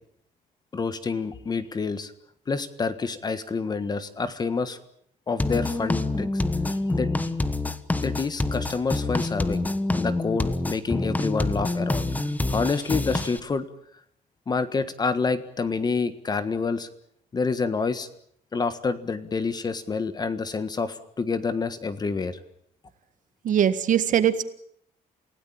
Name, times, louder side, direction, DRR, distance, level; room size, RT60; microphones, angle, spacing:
voice 1, 0.7-2.1 2.5-4.8 5.3-6.4 7.0-7.1 8.0-12.1 12.5-13.6 14.5-16.9 17.3-18.1 18.5-22.4, left 4 dB, 25° left, 12 dB, 1.5 m, -28 dB
sound 1, 5.4-13.4, left 2 dB, 10° left, 1.2 m, -26 dB
voice 2, 23.4-24.4, right 9 dB, 60° right, 12 dB, 1.7 m, -21 dB
28.5 x 17.0 x 8.9 m, 0.70 s
cardioid pair, 155°, 15 cm